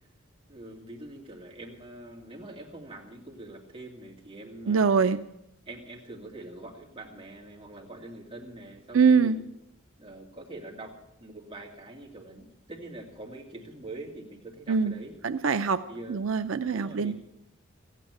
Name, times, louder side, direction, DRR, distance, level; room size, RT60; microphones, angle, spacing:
voice 1, 0.5-4.9 5.7-9.4 10.0-15.2 15.9-16.3 16.7-17.1, right 2 dB, 30° right, -1 dB, 2.7 m, -44 dB
voice 2, 4.7-5.2 8.9-9.4 14.7-14.9 15.2-15.8 16.1-17.1, right 5 dB, 80° right, 10 dB, 0.5 m, -23 dB
15.0 x 9.2 x 9.2 m, 0.83 s
head